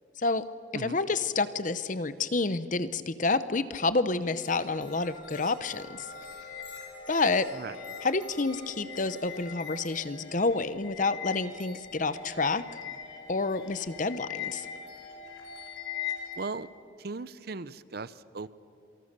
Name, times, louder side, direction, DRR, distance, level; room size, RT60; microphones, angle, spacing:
voice 1, 0.7-6.1 7.1-7.5 8.0-12.6 13.3-14.7, left 3 dB, 40° left, 14 dB, 0.8 m, -29 dB
sound 1, 4.4-16.5, left 7 dB, 80° left, 4.8 m, -42 dB
voice 2, 16.4-16.7 17.0-18.5, right 3 dB, 50° right, 16 dB, 0.7 m, -37 dB
27.5 x 24.5 x 6.8 m, 2.5 s
head